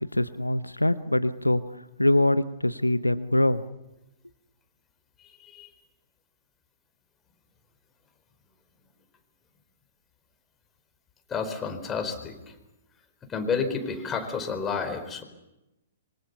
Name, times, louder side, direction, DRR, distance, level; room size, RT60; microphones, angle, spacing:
voice 1, 0.1-1.6 2.0-3.6, left 1 dB, 85° left, 13 dB, 0.9 m, -23 dB
voice 2, 11.3-12.3 13.3-15.2, left 5 dB, 15° left, 6 dB, 4.6 m, -30 dB
26.5 x 25.0 x 7.0 m, 0.95 s
figure-of-eight pair, 115°, 0 cm